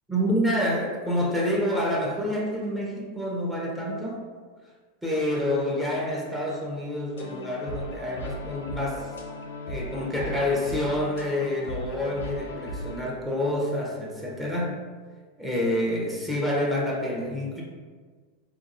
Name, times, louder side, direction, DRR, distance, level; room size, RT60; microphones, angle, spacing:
voice 1, 0.1-4.2 5.0-9.1 9.7-14.8 15.4-17.6, left 1 dB, 10° right, -4 dB, 0.9 m, -28 dB
sound 1, 7.2-13.1, equal, 90° left, 0.5 m, -37 dB
3.4 x 2.8 x 2.5 m, 1.5 s
hypercardioid pair, 110°, 0 cm